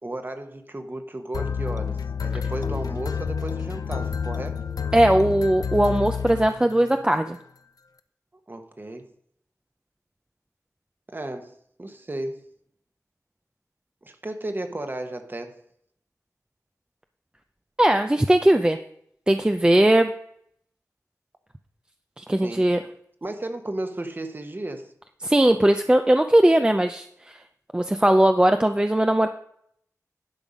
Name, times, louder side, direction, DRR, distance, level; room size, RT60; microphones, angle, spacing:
voice 1, 0.0-4.6 8.5-9.1 11.1-12.5 14.0-15.6 22.4-22.7 23.2-24.9, right 1 dB, 35° right, 1.1 m, -34 dB
sound 1, 1.3-7.0, left 6 dB, 90° left, 0.5 m, -29 dB
voice 2, 4.9-7.4 17.8-18.8 19.3-20.1 22.2-22.8 25.2-27.3 27.7-29.3, right 1 dB, 15° right, 0.5 m, -19 dB
11.0 x 5.8 x 5.1 m
wide cardioid pair, 75°, 6 cm